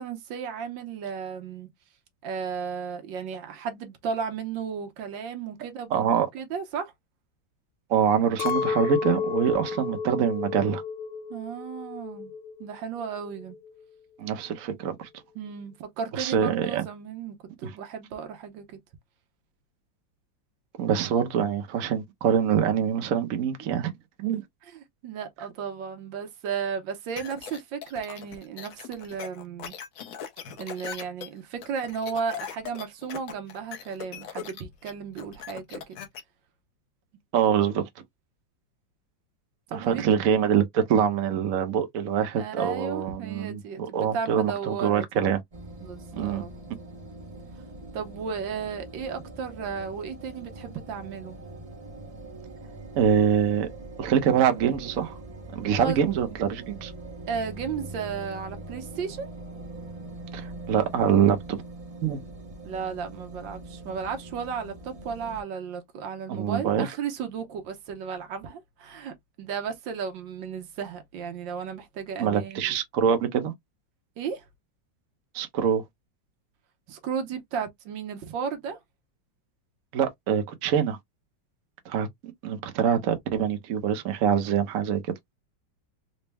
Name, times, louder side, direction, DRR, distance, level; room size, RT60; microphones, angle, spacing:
voice 1, 0.0-1.7 2.2-6.9 11.3-12.3 12.6-13.6 15.3-18.8 24.7-29.7 30.6-36.0 39.7-40.0 42.4-45.1 45.8-46.5 47.9-51.4 55.8-56.0 56.3-56.4 57.3-59.3 62.6-72.8 74.2-74.4 76.9-78.8, right 6 dB, 80° right, 1.5 m, -34 dB
voice 2, 5.9-6.3 7.9-10.8 14.2-15.1 16.1-16.8 17.6-17.7 20.8-23.9 24.2-24.4 37.3-37.8 39.7-45.4 46.1-46.4 53.0-53.7 54.0-55.2 55.5-56.9 60.3-61.6 62.0-62.2 66.3-66.9 72.2-73.5 75.3-75.8 79.9-81.0 81.9-82.1 82.4-85.1, right 8 dB, 60° right, 1.0 m, -24 dB
Chink clink, 8.4-12.8 13.0-13.8, left 6 dB, 80° left, 1.4 m, -31 dB
sound 1, 27.2-36.2, left 8 dB, 60° left, 1.0 m, -40 dB
sound 2, 45.5-65.4, right 2 dB, 30° right, 0.7 m, -42 dB
4.1 x 2.1 x 3.4 m
omnidirectional pair, 2.1 m